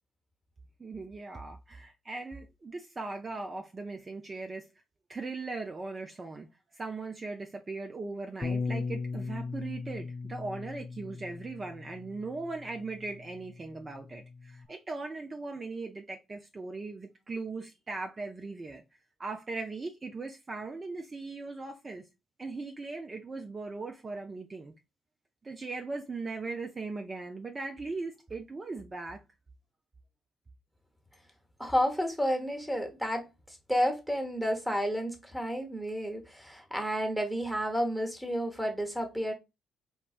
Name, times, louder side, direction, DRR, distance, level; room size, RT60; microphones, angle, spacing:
voice 1, 0.8-4.7 5.1-6.5 6.7-18.8 19.2-22.1 22.4-24.7 25.4-29.2, right 3 dB, 35° right, 0.5 m, -39 dB
Bass guitar, 8.4-14.7, left 4 dB, 30° left, 0.5 m, -38 dB
voice 2, 31.6-39.3, equal, ahead, 1.1 m, -31 dB
4.3 x 2.1 x 2.4 m
hypercardioid pair, 45°, 0 cm